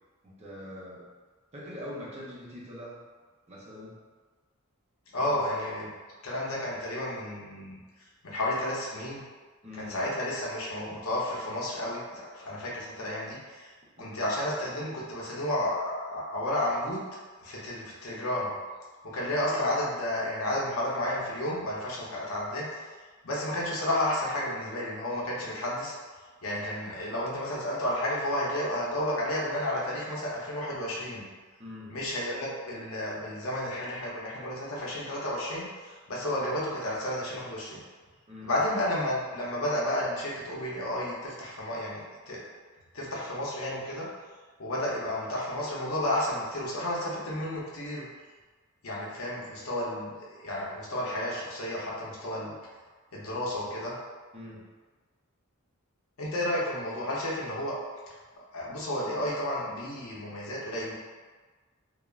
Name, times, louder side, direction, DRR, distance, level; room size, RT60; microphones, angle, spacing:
voice 1, 0.2-1.1 1.5-3.0 3.5-4.0 5.2-5.5 9.6-10.0 14.0-14.3 31.6-31.9 38.3-38.6 54.3-54.6, left 1 dB, 30° right, -6 dB, 0.6 m, -43 dB
voice 2, 5.1-5.9 6.2-7.8 8.2-9.2 9.8-13.4 14.0-17.0 17.4-18.5 19.1-22.7 23.2-25.9 26.4-31.3 31.9-35.7 36.1-37.8 38.4-42.4 42.9-44.1 44.6-48.0 48.8-50.1 50.4-52.5 53.1-53.9 56.2-57.8 58.5-60.9, left 1 dB, 75° left, -5 dB, 0.7 m, -31 dB
3.2 x 2.0 x 2.3 m, 1.4 s
head